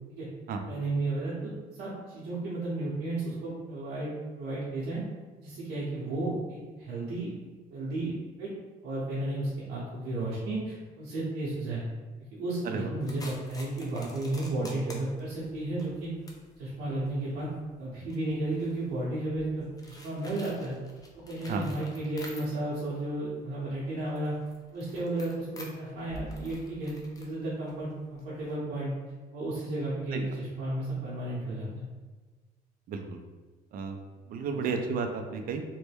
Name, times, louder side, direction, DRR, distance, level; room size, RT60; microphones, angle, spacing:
voice 1, 0.6-5.0 5.4-7.3 7.7-8.1 8.4-8.5 8.8-11.8 12.3-16.1 16.6-17.5 17.8-20.7 21.3-24.3 24.7-28.9 29.3-31.8 34.5-34.7, right 2 dB, 90° right, -8 dB, 0.8 m, -33 dB
sound 1, 13.0-22.8 23.1-28.5, equal, 20° left, 0.5 m, -49 dB
voice 2, 32.9-33.2 33.7-34.0 34.3-35.6, right 5 dB, 60° right, 5 dB, 0.4 m, -32 dB
3.1 x 2.1 x 3.3 m, 1.3 s
cardioid pair, 110°, 17 cm